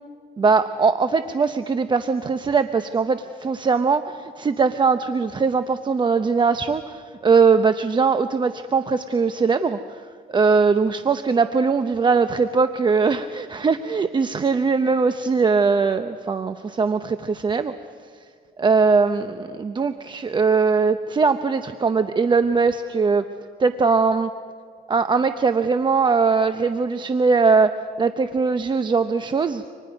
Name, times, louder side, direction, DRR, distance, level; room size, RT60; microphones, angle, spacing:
voice 1, 0.4-10.0 10.3-17.7 18.6-23.2 23.6-24.3 24.9-27.7 28.0-29.6, right 4 dB, 25° right, 10 dB, 0.8 m, -20 dB
29.0 x 26.0 x 5.3 m, 2.1 s
cardioid pair, 110°, 17 cm